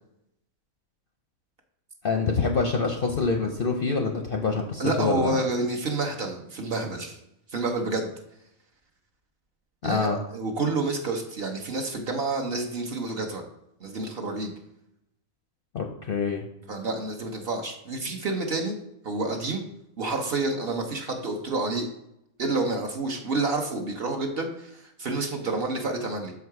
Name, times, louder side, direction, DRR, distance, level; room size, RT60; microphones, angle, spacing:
voice 1, 2.0-5.4 9.8-10.2 15.7-16.4, left 4 dB, 55° left, 3 dB, 0.7 m, -26 dB
voice 2, 4.8-7.2 7.5-8.1 9.8-13.4 13.8-14.5 16.7-18.7 19.0-19.6 20.0-21.9 22.4-26.3, right 3 dB, 50° right, 2 dB, 1.0 m, -29 dB
6.4 x 4.7 x 4.6 m, 0.83 s
omnidirectional pair, 1.5 m